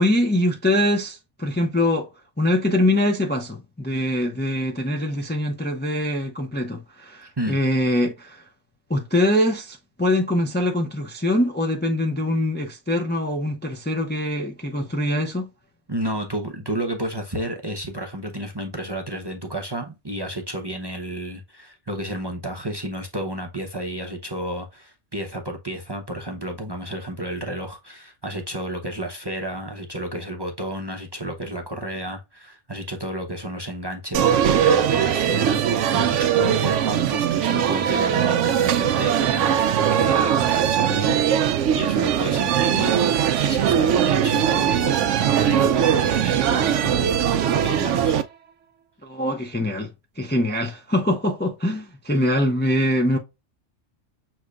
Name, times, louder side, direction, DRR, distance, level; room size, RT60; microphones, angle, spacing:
voice 1, 0.0-2.1 2.4-8.4 8.9-15.5 49.0-49.9 50.2-53.2, left 1 dB, 10° left, 0.5 m, -23 dB
voice 2, 15.9-48.2, right 1 dB, 25° right, 0.7 m, -31 dB
sound 1, 34.1-48.2, right 9 dB, 80° right, 0.9 m, -20 dB
6.4 x 3.1 x 2.4 m
omnidirectional pair, 1.2 m